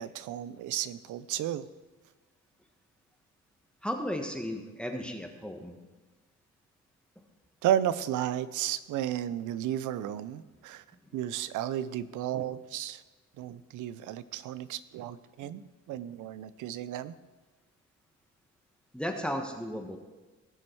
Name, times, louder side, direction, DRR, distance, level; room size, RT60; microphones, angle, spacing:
voice 1, 0.0-1.7 7.6-10.8 11.1-13.0 13.4-15.6 15.9-17.1, right 11 dB, 85° right, 16 dB, 0.6 m, -33 dB
voice 2, 3.8-5.8 11.1-11.2 15.4-15.5 18.9-20.0, equal, 5° left, 4 dB, 1.4 m, -35 dB
18.5 x 6.3 x 4.6 m, 1.3 s
cardioid pair, 90°, 30 cm